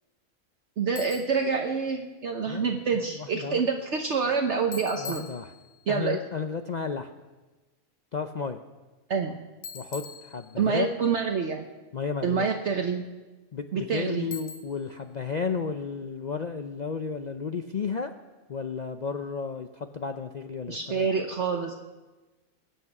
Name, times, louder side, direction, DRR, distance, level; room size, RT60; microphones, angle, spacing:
voice 1, 0.8-5.2 5.9-6.2 9.1-9.4 10.6-11.6 12.2-13.1 13.7-14.3 20.7-21.8, right 5 dB, 55° right, 3 dB, 1.1 m, -27 dB
Bicycle, 1.0-1.5 4.7-5.9 9.6-10.9 14.3-15.0, left 5 dB, 75° left, 1.4 m, -42 dB
voice 2, 5.0-5.5 5.9-7.1 8.1-8.6 9.7-10.9 11.9-12.5 13.5-18.1 18.5-21.1, left 5 dB, 55° left, 7 dB, 0.4 m, -33 dB
21.5 x 8.5 x 6.0 m, 1.2 s
omnidirectional pair, 1.5 m